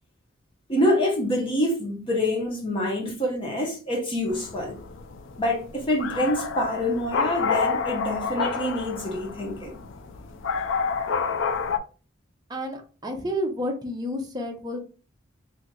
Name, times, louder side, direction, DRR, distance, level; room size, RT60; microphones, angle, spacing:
voice 1, 0.7-4.8 5.4-9.8, left 1 dB, 25° left, 0.9 m, -26 dB
sound 1, 4.3-11.8, left 5 dB, 70° left, 0.5 m, -29 dB
voice 2, 12.5-14.8, equal, 20° right, 0.7 m, -30 dB
3.1 x 2.8 x 3.8 m
head